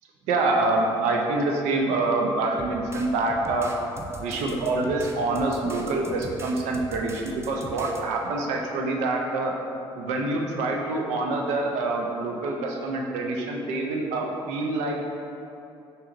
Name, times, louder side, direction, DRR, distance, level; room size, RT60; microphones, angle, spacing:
voice 1, 0.3-3.7 4.2-9.5 10.0-15.0, right 2 dB, 75° right, 1 dB, 0.5 m, -26 dB
sound 1, 2.6-8.0, right 1 dB, 20° right, 0.5 m, -40 dB
5.6 x 3.0 x 2.5 m, 2.8 s
hypercardioid pair, 55°, 12 cm